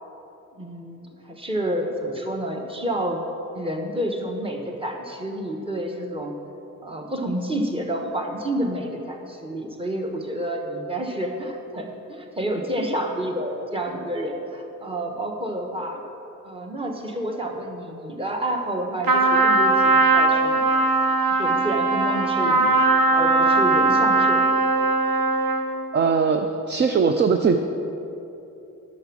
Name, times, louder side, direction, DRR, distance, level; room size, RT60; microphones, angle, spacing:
voice 1, 0.6-3.2 3.5-6.4 6.8-16.0 16.4-20.6 21.4-22.7 23.1-24.5, right 1 dB, 15° right, 2 dB, 1.1 m, -29 dB
Trumpet, 19.0-25.7, right 3 dB, 90° right, 0.9 m, -19 dB
voice 2, 25.9-27.6, right 5 dB, 35° right, 6 dB, 0.4 m, -20 dB
10.5 x 6.1 x 6.1 m, 2.9 s
cardioid pair, 120°, 33 cm